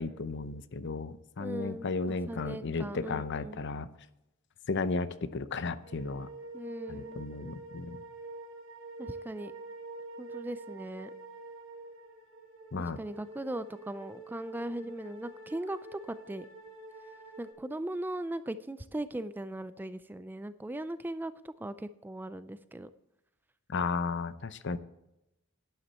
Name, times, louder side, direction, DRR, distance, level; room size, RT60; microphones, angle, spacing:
voice 1, 0.0-3.9 4.7-6.3 6.9-8.0 12.7-13.0 23.7-24.8, left 4 dB, 60° left, 14 dB, 0.6 m, -34 dB
voice 2, 1.4-3.6 6.5-7.2 9.0-9.5 10.2-11.1 12.8-16.5 17.4-22.9, right 1 dB, 10° right, 13 dB, 0.3 m, -39 dB
sound 1, 5.8-17.5, right 2 dB, 65° right, 2.0 m, -47 dB
11.5 x 9.9 x 4.2 m, 0.88 s
head